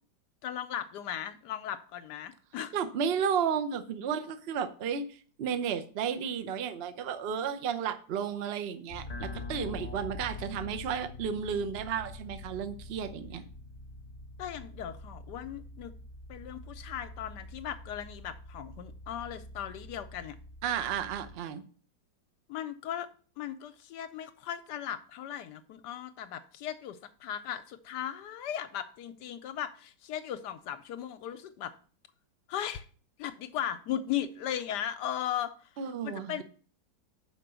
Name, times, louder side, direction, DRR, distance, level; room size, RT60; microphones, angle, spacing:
voice 1, 0.4-2.7 14.4-16.0 16.3-20.4 22.5-23.1 23.4-31.7 32.5-32.9 33.2-36.4, left 10 dB, 75° left, 1.1 m, -37 dB
voice 2, 2.7-5.0 5.4-13.4 20.6-21.6 35.8-36.4, right 7 dB, 55° right, 0.7 m, -33 dB
sound 1, 8.9-21.4, left 2 dB, 25° left, 1.2 m, -45 dB
5.9 x 5.0 x 6.7 m
omnidirectional pair, 1.9 m